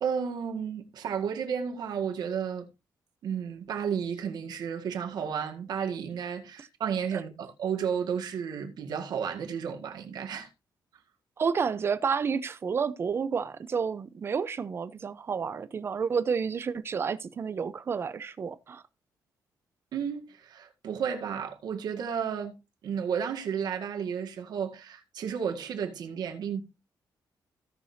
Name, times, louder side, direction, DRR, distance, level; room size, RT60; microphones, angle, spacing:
voice 1, 0.0-2.7 3.2-10.5 19.9-22.5 22.8-26.6, right 7 dB, 70° right, 1.9 m, -32 dB
voice 2, 11.4-18.8, right 6 dB, 35° right, 0.7 m, -30 dB
16.5 x 6.1 x 2.8 m
wide cardioid pair, 170°, 7 cm